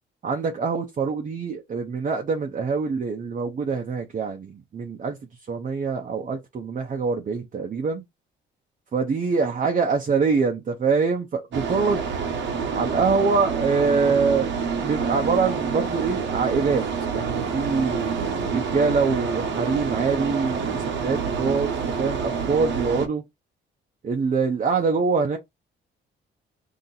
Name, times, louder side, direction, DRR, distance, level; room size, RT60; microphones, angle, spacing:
voice 1, 0.2-5.2 5.5-8.0 8.9-12.0 12.7-14.5 14.8-16.8 17.1-23.2 24.0-25.4, right 5 dB, 40° right, 0.7 m, -24 dB
sound 1, 11.5-23.1, right 6 dB, 70° right, 1.0 m, -27 dB
2.9 x 2.8 x 3.9 m
cardioid pair, 90°, 20 cm